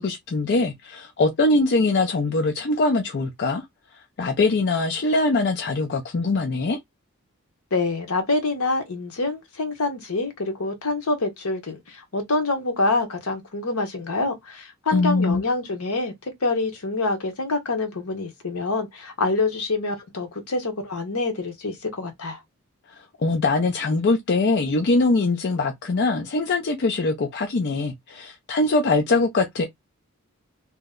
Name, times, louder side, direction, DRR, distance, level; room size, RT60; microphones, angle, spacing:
voice 1, 0.0-3.6 4.2-6.8 14.9-15.4 22.9-29.6, left 3 dB, 50° left, 0.5 m, -22 dB
voice 2, 7.7-22.4, left 3 dB, 75° left, 1.0 m, -26 dB
2.8 x 2.1 x 3.6 m
head